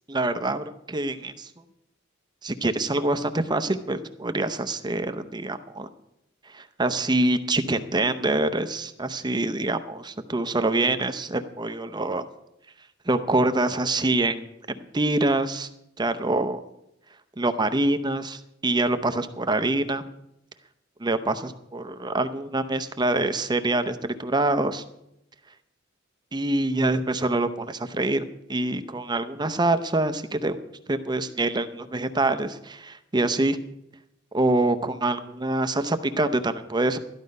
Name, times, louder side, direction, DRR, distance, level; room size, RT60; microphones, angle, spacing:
voice 1, 0.1-1.5 2.4-5.9 6.5-12.2 13.1-15.7 16.0-16.6 17.4-20.0 21.0-24.8 26.3-28.2 28.5-33.6 34.3-37.0, right 2 dB, 20° right, 9 dB, 0.7 m, -25 dB
13.5 x 11.5 x 5.3 m, 0.83 s
head